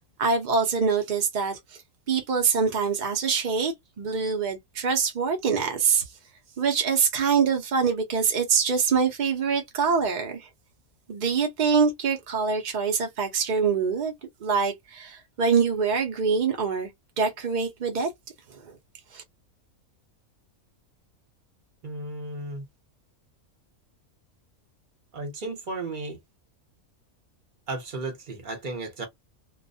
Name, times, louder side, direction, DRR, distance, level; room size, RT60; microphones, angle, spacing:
voice 1, 0.2-1.6 2.1-6.0 6.6-10.5 11.1-14.1 14.4-16.9 17.2-18.1 18.5-18.6 19.1-19.2, right 5 dB, 60° right, 0.4 m, -24 dB
voice 2, 21.8-22.6 25.1-26.2 27.7-29.1, right 2 dB, 40° right, 0.9 m, -34 dB
2.3 x 2.1 x 2.5 m
omnidirectional pair, 1.5 m